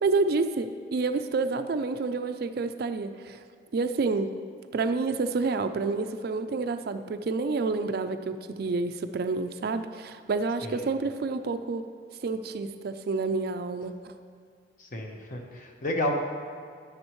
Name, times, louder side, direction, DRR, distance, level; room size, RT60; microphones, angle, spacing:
voice 1, 0.0-3.4 3.7-4.3 4.7-11.9 12.2-14.1, right 3 dB, 60° right, 9 dB, 0.4 m, -29 dB
voice 2, 14.8-16.2, left 1 dB, 45° left, 2 dB, 1.0 m, -31 dB
10.5 x 8.2 x 3.1 m, 2.2 s
head